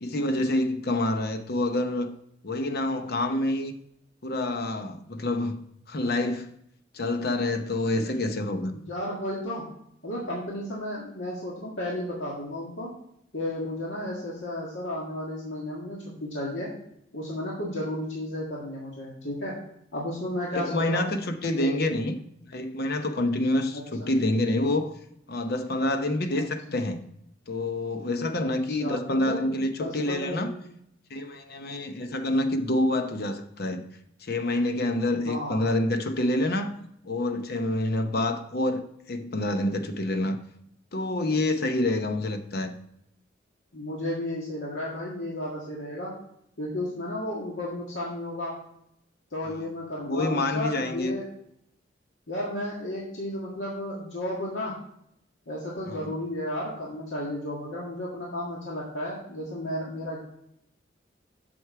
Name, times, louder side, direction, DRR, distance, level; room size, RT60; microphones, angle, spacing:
voice 1, 0.0-2.1 2.4-3.7 4.2-6.5 6.9-8.8 20.5-22.2 22.5-24.9 25.3-27.0 27.5-30.5 31.1-33.8 34.2-36.7 37.0-40.4 40.9-42.7 49.5-49.6 50.1-51.1 55.9-56.1, left 1 dB, 55° left, 8 dB, 0.8 m, -27 dB
voice 2, 8.7-9.6 10.0-12.9 13.3-16.7 17.1-19.5 19.9-21.1 21.5-21.9 23.7-24.1 26.3-26.4 28.4-28.5 28.8-29.5 29.8-30.6 35.3-35.7 43.7-46.1 46.6-48.5 49.3-51.2 52.3-54.7 55.5-60.2, left 1 dB, 85° left, -4 dB, 1.8 m, -33 dB
8.0 x 6.2 x 4.7 m, 0.74 s
head